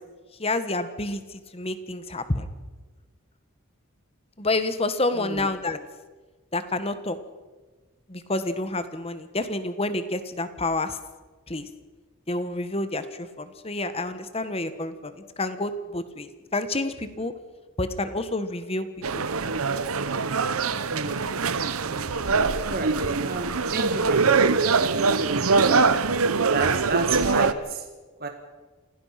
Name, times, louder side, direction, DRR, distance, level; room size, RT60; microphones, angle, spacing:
voice 1, 0.4-2.5 4.4-5.8 6.5-7.2 8.1-11.0 11.5-11.7 12.3-17.3 17.8-18.9 19.1-19.3 26.3-26.8, left 2 dB, 25° left, 11 dB, 1.4 m, -29 dB
voice 2, 5.2-5.5 20.9-21.4 21.8-22.1 22.6-23.0 23.2-25.9 26.5-27.8 28.2-28.3, right 3 dB, 45° right, 4 dB, 1.7 m, -32 dB
sound 1, 19.0-27.5, right 4 dB, 85° right, 1.0 m, -23 dB
27.0 x 17.0 x 5.9 m, 1.3 s
head